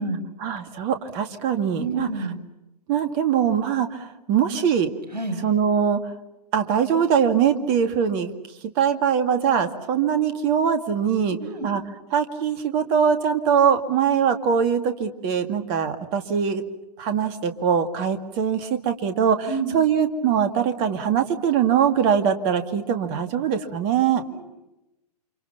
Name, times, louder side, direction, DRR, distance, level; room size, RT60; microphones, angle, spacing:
voice 1, 0.4-2.1 2.9-4.9 5.4-6.0 6.5-8.3 8.8-11.4 11.6-11.8 12.1-16.6 17.0-19.5 19.7-24.2, right 7 dB, 35° right, 8 dB, 2.2 m, -22 dB
voice 2, 1.8-2.4 5.1-5.4 11.3-11.7 19.5-19.8 24.2-24.4, right 3 dB, 75° right, 3 dB, 5.0 m, -29 dB
29.5 x 27.0 x 5.7 m, 0.92 s
figure-of-eight pair, 110°, 21 cm